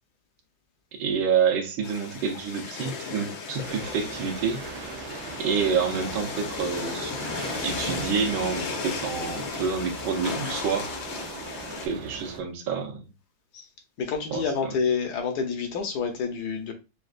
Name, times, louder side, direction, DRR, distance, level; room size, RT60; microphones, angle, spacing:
voice 1, 0.9-4.6 5.4-7.1 7.6-10.9 11.8-13.0 14.3-14.7, right 6 dB, 80° right, 1.6 m, -28 dB
sound 1, 1.8-11.9, left 5 dB, 80° left, 1.6 m, -35 dB
sound 2, 3.6-12.4, right 5 dB, 65° right, 1.0 m, -40 dB
voice 2, 14.0-16.7, left 5 dB, 60° left, 1.2 m, -28 dB
6.2 x 2.3 x 2.4 m
omnidirectional pair, 2.2 m